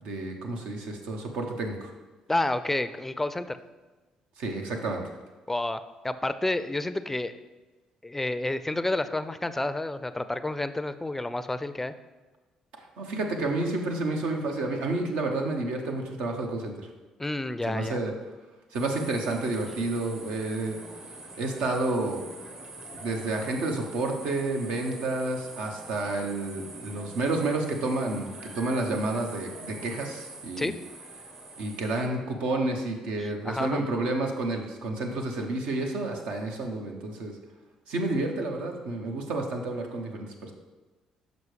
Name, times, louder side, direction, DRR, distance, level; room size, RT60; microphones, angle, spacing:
voice 1, 0.0-1.9 4.4-5.0 13.0-16.9 17.7-18.1 18.7-20.8 21.4-22.2 23.0-30.7 31.6-37.3 37.9-40.5, right 2 dB, 75° right, 2 dB, 0.8 m, -30 dB
voice 2, 2.3-3.6 5.5-7.3 8.0-11.9 17.2-18.0 30.6-30.7 33.2-33.8, left 2 dB, 15° left, 12 dB, 0.4 m, -30 dB
sound 1, 18.7-32.1, right 2 dB, 40° right, 1.0 m, -44 dB
6.1 x 5.2 x 3.3 m, 1.2 s
supercardioid pair, 60°, 2 cm